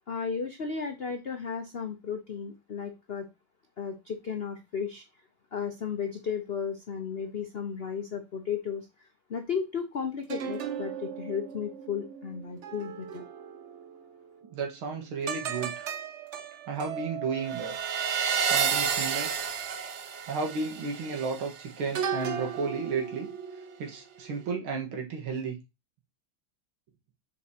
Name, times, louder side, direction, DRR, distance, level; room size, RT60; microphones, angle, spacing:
voice 1, 0.1-3.3 3.8-5.0 5.5-8.9 9.3-13.2, left 6 dB, 70° left, 6 dB, 0.5 m, -34 dB
sound 1, 10.3-13.9 15.3-23.8 24.2-24.5, right 7 dB, 65° right, 0.7 m, -33 dB
voice 2, 14.5-15.9 16.7-17.7 18.4-19.3 20.3-23.3 23.8-25.6, right 4 dB, 85° right, 1 dB, 2.4 m, -33 dB
7.3 x 5.2 x 2.8 m, 0.24 s
omnidirectional pair, 2.2 m